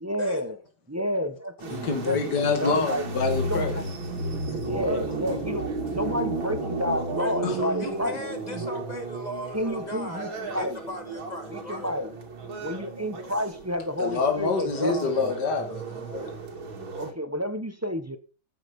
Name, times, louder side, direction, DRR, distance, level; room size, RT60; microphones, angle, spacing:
voice 1, 0.0-0.6 0.9-3.0 3.4-3.8 4.7-8.2 8.5-8.6 9.5-10.8 11.5-12.1 12.6-15.3 17.0-18.2, left 1 dB, 15° right, 0.6 m, -30 dB
sound 1, 1.6-17.1, right 2 dB, 80° right, 3.3 m, -33 dB
voice 2, 1.7-3.8 4.2-4.6 7.4-7.6 14.0-16.3, left 4 dB, 55° left, 2.7 m, -27 dB
voice 3, 7.1-11.9, left 1 dB, 20° left, 2.7 m, -38 dB
14.0 x 8.3 x 5.3 m
omnidirectional pair, 2.1 m